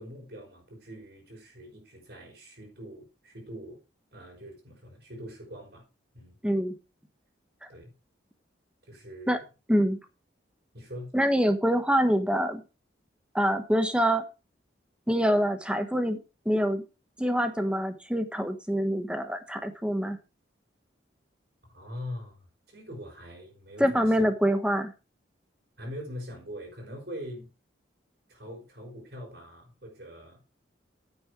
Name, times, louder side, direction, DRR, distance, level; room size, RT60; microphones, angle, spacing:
voice 1, 0.0-3.8 4.1-5.8 6.1-6.4 7.7-7.9 8.9-9.4 10.7-11.1 21.7-24.3 25.8-27.5 28.3-30.4, equal, 60° right, 0 dB, 5.2 m, -43 dB
voice 2, 6.4-6.7 9.3-9.4 9.7-10.0 11.1-12.6 13.3-14.2 15.1-16.2 16.4-16.8 17.2-20.2 23.8-24.9, equal, 5° right, 8 dB, 1.1 m, -25 dB
9.7 x 7.7 x 4.9 m, 0.30 s
head